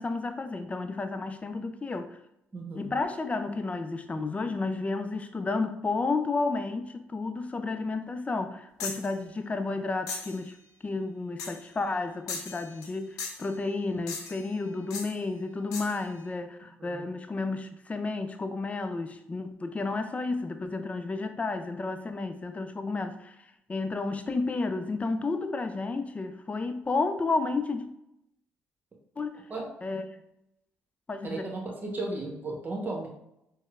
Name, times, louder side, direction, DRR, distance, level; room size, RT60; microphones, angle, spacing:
voice 1, 0.0-2.2 2.7-10.6 10.8-23.3 23.7-27.9 29.2-29.4 29.8-30.1 31.1-31.5, left 3 dB, 25° left, 0.4 m, -32 dB
voice 2, 2.5-2.9 16.8-17.0 29.5-29.7 31.2-33.1, right 2 dB, 35° right, 0.9 m, -35 dB
sound 1, 8.8-9.1 10.1-10.4 11.4-11.7 12.3-12.9 13.2-13.5 14.1-14.5 14.9-15.1 15.7-16.0, left 4 dB, 85° left, 0.5 m, -37 dB
4.1 x 2.1 x 2.4 m
supercardioid pair, 60°, 6 cm